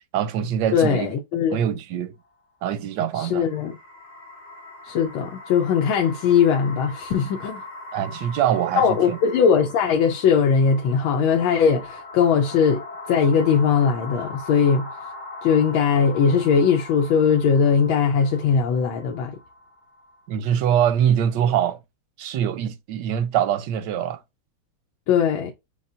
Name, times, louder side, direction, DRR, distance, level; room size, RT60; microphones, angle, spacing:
voice 1, 0.1-1.1 1.5-2.1 2.6-3.5 7.9-9.2 20.3-21.8 22.2-24.2, right 9 dB, 75° right, 1.0 m, -23 dB
voice 2, 0.7-1.6 3.1-3.8 4.8-7.6 8.8-14.9 15.4-19.3 25.1-25.5, left 6 dB, 85° left, 1.5 m, -20 dB
sound 1, 3.1-20.2, left 2 dB, 35° left, 1.8 m, -40 dB
6.8 x 2.4 x 2.4 m
omnidirectional pair, 2.2 m